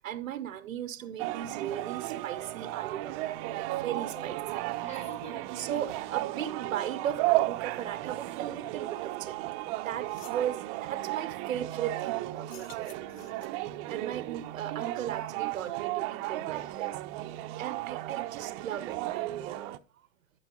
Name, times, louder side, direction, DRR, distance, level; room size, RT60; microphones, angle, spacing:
voice 1, 0.0-4.4 5.6-13.0 13.9-17.0 17.6-19.8, right 10 dB, 70° right, 0.7 m, -37 dB
sound 1, 1.2-19.8, right 17 dB, 40° right, 0.6 m, -34 dB
voice 2, 4.1-6.0 6.4-6.5 13.7-14.3, equal, 15° left, 1.9 m, -51 dB
sound 2, 9.5-9.6 9.9-10.5 12.4-13.7, left 8 dB, 70° left, 1.0 m, -52 dB
11.5 x 5.6 x 2.9 m
figure-of-eight pair, 95°, 41 cm